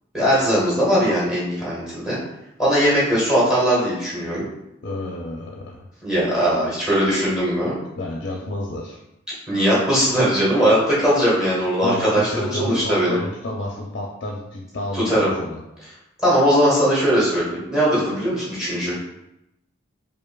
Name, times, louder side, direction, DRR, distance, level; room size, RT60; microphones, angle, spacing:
voice 1, 0.1-2.2 2.6-4.4 6.0-7.8 9.5-13.2 14.9-15.3 16.2-18.9, equal, 5° right, -9 dB, 1.4 m, -19 dB
voice 2, 4.8-5.8 8.0-9.0 11.8-15.6, left 2 dB, 55° left, -2 dB, 0.5 m, -30 dB
4.8 x 2.6 x 2.3 m, 0.88 s
head